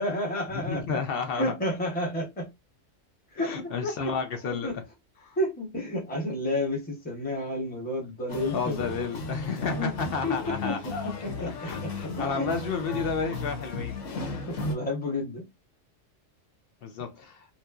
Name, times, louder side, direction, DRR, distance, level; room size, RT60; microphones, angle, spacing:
voice 1, 0.0-1.0 1.3-2.5 3.3-4.1 4.4-4.7 5.4-8.8 9.8-11.5 12.2-12.5 14.5-15.4, left 1 dB, 10° left, 0.7 m, -31 dB
voice 2, 0.5-1.5 3.4-4.8 5.2-5.4 8.5-11.1 11.4-14.0 16.8-17.4, left 5 dB, 60° left, 0.7 m, -32 dB
sound 1, 8.3-14.8, left 2 dB, 75° left, 1.1 m, -35 dB
2.9 x 2.5 x 2.3 m
omnidirectional pair, 1.3 m